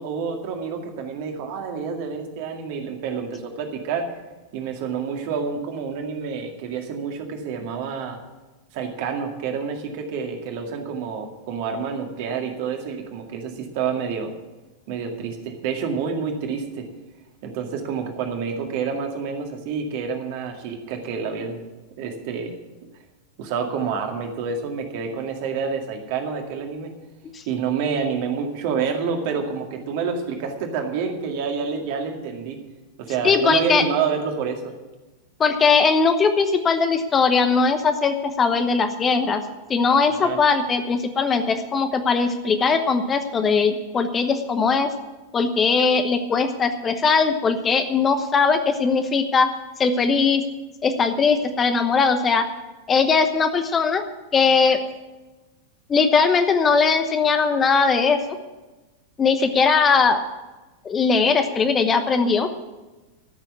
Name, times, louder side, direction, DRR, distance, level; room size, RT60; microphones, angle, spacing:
voice 1, 0.0-4.1 4.5-8.2 8.7-14.3 14.9-16.9 17.4-21.6 22.0-22.5 23.4-26.9 27.5-32.6 33.0-34.7 40.1-40.4, right 6 dB, 50° right, 3 dB, 2.1 m, -28 dB
voice 2, 33.2-33.8 35.4-39.4 39.7-44.9 45.3-49.5 49.8-50.4 50.8-52.4 52.9-54.0 54.3-54.8 55.9-58.2 59.2-60.2 60.8-62.5, left 5 dB, 20° left, 8 dB, 1.0 m, -19 dB
13.5 x 6.9 x 9.4 m, 1.2 s
figure-of-eight pair, 90°, 0 cm